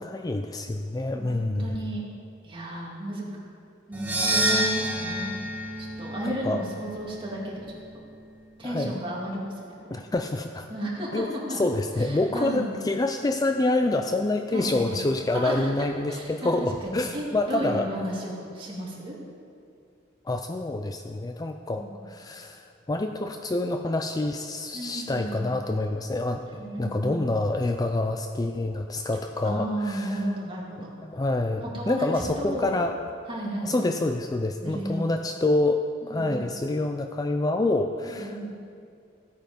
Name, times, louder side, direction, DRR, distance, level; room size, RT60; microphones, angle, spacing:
voice 1, 0.0-1.8 6.2-6.6 8.6-9.0 9.9-10.7 11.1-17.9 20.3-30.2 31.0-33.0 33.6-38.5, left 2 dB, 20° left, 6 dB, 0.4 m, -27 dB
voice 2, 1.1-2.0 2.4-3.2 3.9-5.3 5.8-7.6 8.6-10.0 10.7-11.6 12.0-12.7 14.5-15.0 15.3-16.5 16.8-19.2 21.8-22.0 24.7-25.5 26.4-27.2 29.4-30.9 31.6-32.1 32.4-32.8 33.3-34.0 34.6-35.1 36.0-36.5 38.0-38.5, right 1 dB, 25° right, -4 dB, 2.5 m, -33 dB
sound 1, 3.9-8.3, right 1 dB, 10° right, 1.8 m, -29 dB
14.5 x 9.1 x 5.2 m, 2.4 s
head